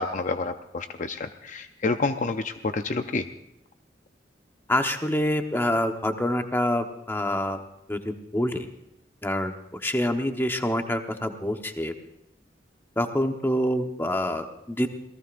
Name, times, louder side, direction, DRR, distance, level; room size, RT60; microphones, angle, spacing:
voice 1, 0.0-3.2, left 3 dB, 45° left, 8 dB, 0.6 m, -29 dB
voice 2, 4.7-7.6 7.9-8.7 9.2-11.9 13.0-14.9, left 1 dB, 15° left, 5 dB, 1.1 m, -26 dB
27.0 x 18.5 x 2.6 m, 0.83 s
head